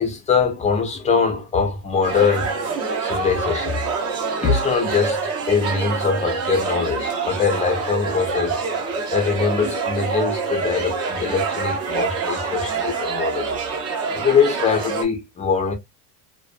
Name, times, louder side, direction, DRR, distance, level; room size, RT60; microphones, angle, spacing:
voice 1, 0.0-2.5 3.0-3.8 4.4-5.2 5.5-13.6 14.1-15.7, left 5 dB, 15° left, 0.5 m, -22 dB
sound 1, 2.0-15.0, right 4 dB, 30° right, 0.8 m, -26 dB
2.4 x 2.4 x 2.3 m
supercardioid pair, 120°, 50 cm